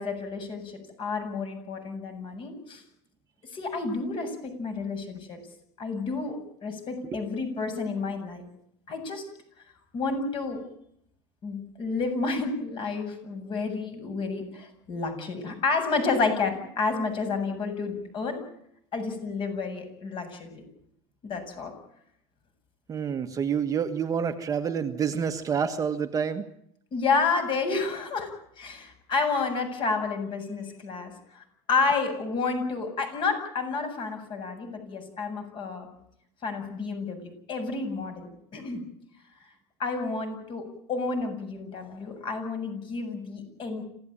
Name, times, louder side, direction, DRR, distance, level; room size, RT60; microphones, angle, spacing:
voice 1, 0.0-2.8 3.5-5.4 5.8-8.4 8.9-9.2 9.9-10.6 11.4-18.4 18.9-20.6 21.2-21.7 26.9-28.3 28.6-35.9 36.4-38.8 39.8-43.9, left 4 dB, 35° left, 6 dB, 7.6 m, -30 dB
voice 2, 22.9-26.5, right 7 dB, 25° right, 6 dB, 1.5 m, -28 dB
27.0 x 16.5 x 9.0 m, 0.73 s
cardioid pair, 145°, 14 cm